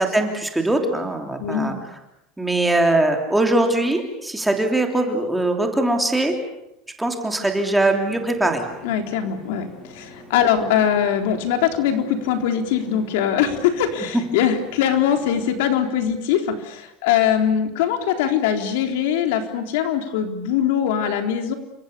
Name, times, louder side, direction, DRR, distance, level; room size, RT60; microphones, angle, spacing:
voice 1, 0.0-1.7 2.4-6.3 7.0-8.6 10.5-10.7 14.1-14.2, right 2 dB, 5° right, 3 dB, 3.2 m, -21 dB
voice 2, 1.4-1.8 8.8-21.5, left 9 dB, 75° left, 5 dB, 4.0 m, -22 dB
sound 1, 8.0-15.5, left 1 dB, 25° left, 7.5 m, -44 dB
29.5 x 25.5 x 7.1 m, 0.83 s
cardioid pair, 175°, 0 cm